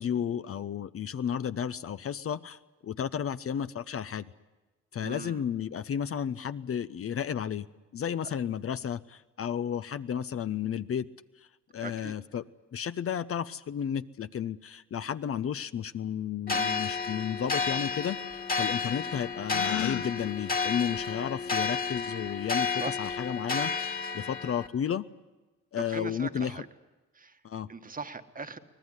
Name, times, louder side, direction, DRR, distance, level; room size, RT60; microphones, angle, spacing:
voice 1, 0.0-4.3 4.9-7.7 7.9-11.1 11.7-12.4 12.7-25.1 25.7-26.6 27.4-27.7, left 8 dB, 50° left, 13 dB, 0.7 m, -33 dB
voice 2, 5.0-5.4 8.2-8.3 11.8-12.1 16.5-16.8 22.7-23.0 25.8-26.7 27.1-27.4 27.7-28.6, right 4 dB, 30° right, 9 dB, 1.5 m, -40 dB
sound 1, 16.5-24.7, left 5 dB, 30° left, 1.9 m, -31 dB
Gasp, 19.5-20.1, left 13 dB, 80° left, 1.0 m, -32 dB
24.0 x 18.5 x 9.8 m, 1.2 s
cardioid pair, 85°, 29 cm